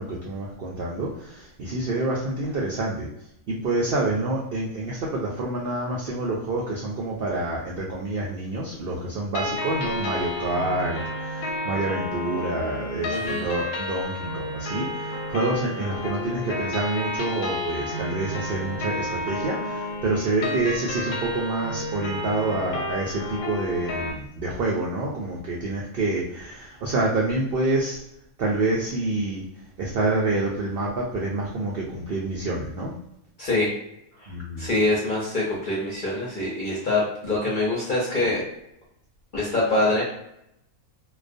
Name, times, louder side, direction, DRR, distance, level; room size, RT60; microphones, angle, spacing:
voice 1, 0.0-3.1 3.5-28.0 28.4-29.4 29.8-32.9 34.3-34.7, right 2 dB, 85° right, -3 dB, 0.5 m, -27 dB
sound 1, 9.3-24.1, left 1 dB, 90° left, 1.1 m, -31 dB
voice 2, 13.1-13.5 20.4-20.6 33.4-33.7 34.2-34.3 34.6-38.4 39.3-40.0, left 2 dB, 55° left, -5 dB, 0.5 m, -24 dB
2.3 x 2.2 x 2.5 m, 0.79 s
omnidirectional pair, 1.5 m